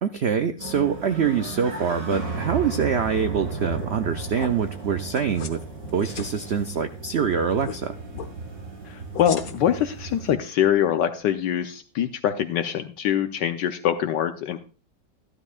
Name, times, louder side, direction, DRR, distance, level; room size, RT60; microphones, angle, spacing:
voice 1, 0.0-5.6 5.9-8.0, right 7 dB, 80° right, 9 dB, 0.5 m, -25 dB
sound 1, 0.6-10.3, right 4 dB, 50° right, 3.1 m, -35 dB
sound 2, 3.7-4.0 4.3-4.5 5.2-5.6 5.8-6.3 7.6-7.8 8.1-8.3 9.1-9.8, left 6 dB, 55° left, 1.4 m, -36 dB
voice 2, 8.9-14.6, left 10 dB, 75° left, 8 dB, 1.3 m, -24 dB
14.5 x 11.5 x 2.4 m, 0.35 s
omnidirectional pair, 2.0 m